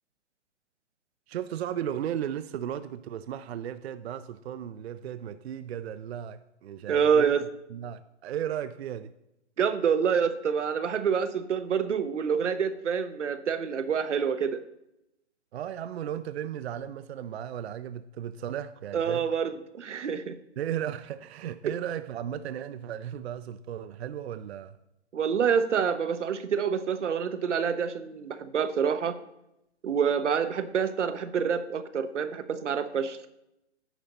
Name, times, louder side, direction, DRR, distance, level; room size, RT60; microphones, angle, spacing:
voice 1, 1.3-7.3 7.7-9.1 15.5-19.2 20.6-24.8, right 10 dB, 60° right, 0.5 m, -35 dB
voice 2, 6.9-7.4 9.6-14.6 18.9-20.3 21.6-21.7 25.1-29.2 29.8-33.2, right 7 dB, 90° right, 0.8 m, -27 dB
10.0 x 4.2 x 5.2 m
hypercardioid pair, 145°, 35 cm